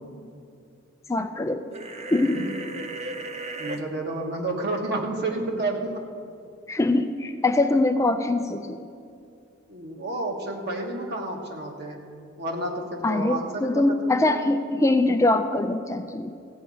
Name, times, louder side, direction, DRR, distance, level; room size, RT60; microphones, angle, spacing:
voice 1, 1.1-1.7 2.1-2.4 6.7-8.8 13.0-16.3, left 2 dB, 15° left, 7 dB, 0.4 m, -23 dB
sound 1, 1.7-3.8, right 2 dB, 35° right, 0.7 m, -35 dB
voice 2, 3.6-6.0 9.7-12.0 12.4-14.4, right 2 dB, 55° right, 1 dB, 1.5 m, -30 dB
15.5 x 5.2 x 8.4 m, 2.5 s
head